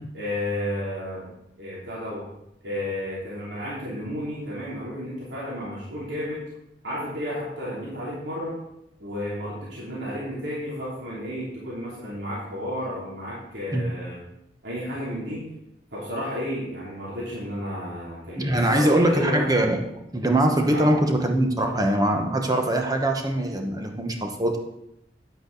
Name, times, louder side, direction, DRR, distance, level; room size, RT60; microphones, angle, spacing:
voice 1, 0.1-1.3 1.6-2.2 2.6-6.4 6.8-8.6 9.0-14.2 14.6-15.5 15.9-19.5 20.6-20.9, equal, 85° right, -7 dB, 3.1 m, -32 dB
voice 2, 18.4-19.8 20.1-24.6, right 1 dB, 20° right, 3 dB, 1.2 m, -22 dB
10.0 x 8.0 x 4.0 m, 0.83 s
head